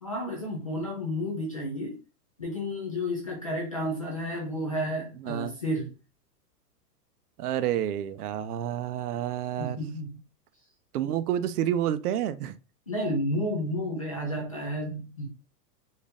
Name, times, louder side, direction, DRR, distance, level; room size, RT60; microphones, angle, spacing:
voice 1, 0.0-2.0 2.4-5.9 9.6-10.1 12.9-15.3, equal, 25° left, 0.3 m, -31 dB
voice 2, 5.2-5.5 7.4-9.8 10.9-12.6, right 11 dB, 70° right, 0.6 m, -29 dB
4.3 x 2.5 x 3.4 m
supercardioid pair, 170°, 47 cm